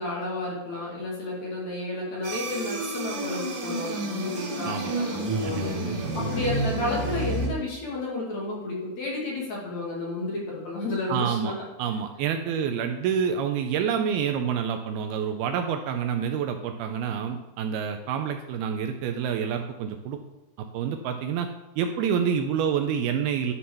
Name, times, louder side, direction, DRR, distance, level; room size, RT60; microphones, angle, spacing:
voice 1, 0.0-11.5, left 2 dB, 45° left, -4 dB, 3.4 m, -32 dB
sound 1, 2.2-7.5, right 1 dB, 40° right, 3.0 m, -30 dB
voice 2, 4.6-6.1 11.1-20.2 20.6-21.5 21.8-23.5, right 7 dB, 80° right, 6 dB, 2.4 m, -28 dB
11.0 x 6.5 x 5.6 m, 0.98 s
omnidirectional pair, 4.8 m